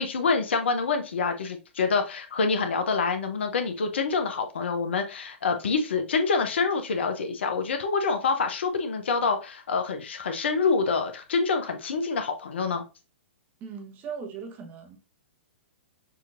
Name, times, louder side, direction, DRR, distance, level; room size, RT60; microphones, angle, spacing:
voice 1, 0.0-12.8, left 4 dB, 65° left, 0.9 m, -26 dB
voice 2, 13.6-15.0, right 6 dB, 30° right, 1.0 m, -38 dB
6.3 x 2.9 x 2.5 m
figure-of-eight pair, 115°, 7 cm